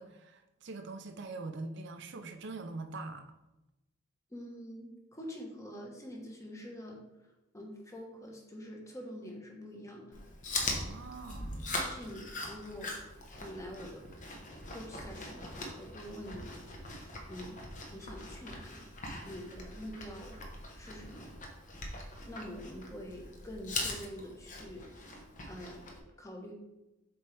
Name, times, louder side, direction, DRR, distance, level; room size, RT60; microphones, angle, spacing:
voice 1, 0.0-3.3 10.7-11.7, right 3 dB, 60° right, 7 dB, 0.6 m, -43 dB
voice 2, 4.3-7.0 7.5-10.2 11.8-12.9 13.4-14.0 14.7-16.6 17.3-17.6 17.9-18.9 19.3-20.4 20.8-21.3 22.3-25.9 26.2-26.5, equal, 15° left, 0 dB, 1.2 m, -46 dB
Chewing mastication, 10.1-26.0, left 2 dB, 40° left, 1.1 m, -41 dB
7.6 x 4.3 x 3.4 m, 0.95 s
head